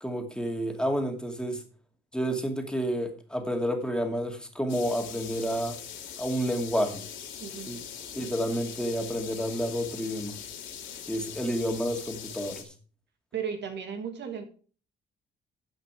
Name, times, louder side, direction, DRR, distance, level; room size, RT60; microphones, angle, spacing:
voice 1, 0.0-1.6 2.1-5.8 6.2-7.0 7.7-7.8 8.2-10.4 11.1-12.7, equal, 5° left, 2.5 m, -30 dB
sound 1, 4.7-12.6, left 8 dB, 75° left, 2.8 m, -41 dB
voice 2, 7.4-7.8 13.3-14.4, right 7 dB, 65° right, 2.2 m, -35 dB
15.0 x 5.9 x 4.8 m
cardioid pair, 90°, 20 cm